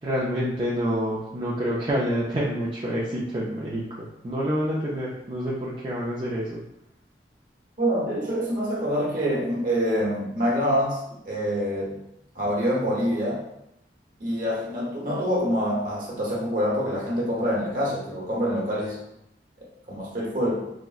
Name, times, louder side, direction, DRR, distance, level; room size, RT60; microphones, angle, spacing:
voice 1, 0.0-6.6, equal, 25° right, -7 dB, 0.4 m, -27 dB
voice 2, 7.8-12.0 12.3-13.4 14.2-19.0 19.9-20.7, equal, 45° right, -5 dB, 1.0 m, -26 dB
3.6 x 2.0 x 2.4 m, 0.81 s
head